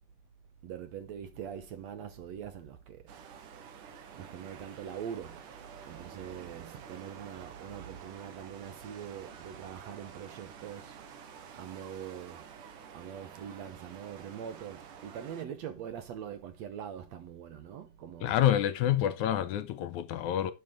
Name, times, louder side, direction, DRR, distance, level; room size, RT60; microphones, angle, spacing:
voice 1, 0.6-3.0 4.2-5.5 5.9-11.0 11.5-12.5 12.9-18.5, right 8 dB, 65° right, 2.0 m, -43 dB
sound 1, 3.1-15.4, right 7 dB, 85° right, 2.9 m, -49 dB
voice 2, 18.2-20.5, left 11 dB, 80° left, 2.1 m, -28 dB
11.5 x 7.0 x 3.7 m
omnidirectional pair, 3.6 m